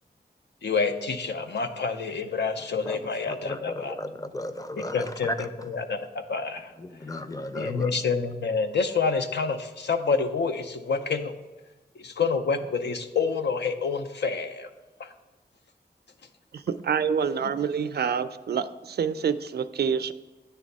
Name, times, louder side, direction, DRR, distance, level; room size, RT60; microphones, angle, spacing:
voice 1, 0.6-4.0 4.8-6.7 7.5-11.3 12.0-14.7 15.0-15.1, left 5 dB, 85° left, 7 dB, 0.6 m, -28 dB
voice 2, 3.3-3.6 4.0-5.1 6.8-7.9, left 1 dB, 20° left, 10 dB, 0.5 m, -35 dB
voice 3, 16.5-20.1, right 7 dB, 70° right, 12 dB, 0.4 m, -27 dB
9.2 x 3.5 x 5.3 m, 1.1 s
wide cardioid pair, 65°, 17 cm